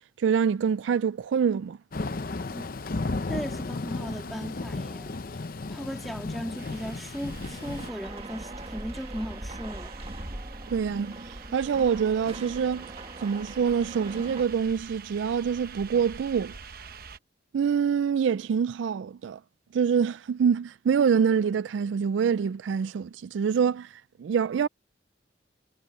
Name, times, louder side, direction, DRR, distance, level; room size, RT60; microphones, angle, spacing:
voice 1, 0.2-1.8 10.7-11.1 11.5-12.9 13.2-16.5 17.5-19.4 19.7-23.9 24.2-24.7, right 7 dB, 85° right, 0.3 m, -25 dB
Thunder / Rain, 1.9-7.9, left 3 dB, 50° left, 0.7 m, -34 dB
voice 2, 3.1-5.2 5.7-9.9, equal, ahead, 2.0 m, -37 dB
sound 1, 6.6-17.2, right 5 dB, 55° right, 0.9 m, -46 dB
sound 2, 7.3-14.4, right 1 dB, 35° right, 1.4 m, -40 dB
head